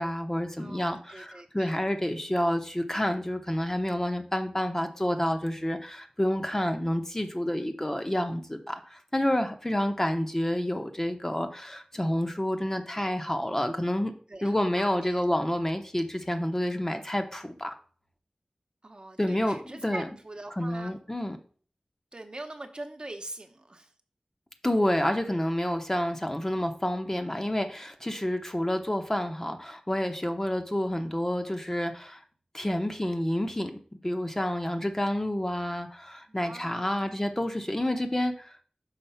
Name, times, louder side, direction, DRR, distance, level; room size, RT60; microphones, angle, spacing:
voice 1, 0.0-14.1 14.4-17.7 19.2-20.1 20.6-21.4 24.6-32.2 32.5-38.6, left 1 dB, 20° left, 6 dB, 0.9 m, -29 dB
voice 2, 0.6-1.8 14.3-15.2 18.8-21.0 22.1-23.9 36.3-37.1, right 2 dB, 45° right, 5 dB, 1.0 m, -43 dB
5.8 x 4.3 x 5.7 m, 0.43 s
wide cardioid pair, 65°, 2 cm